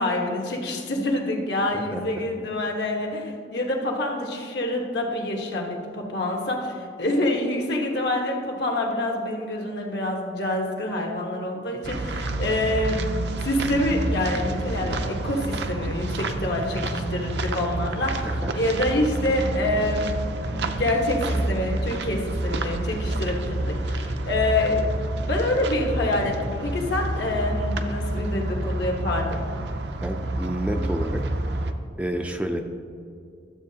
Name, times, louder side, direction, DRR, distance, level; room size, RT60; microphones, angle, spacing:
voice 1, 0.0-13.0 13.4-18.1 18.5-20.1 20.4-24.9 25.2-29.4, left 1 dB, 70° left, 0 dB, 1.3 m, -26 dB
sound 1, 11.8-31.7, right 2 dB, 70° right, 0.5 m, -28 dB
voice 2, 30.0-31.2 32.0-32.6, equal, 5° right, 4 dB, 0.3 m, -29 dB
12.5 x 7.5 x 2.8 m, 2.4 s
head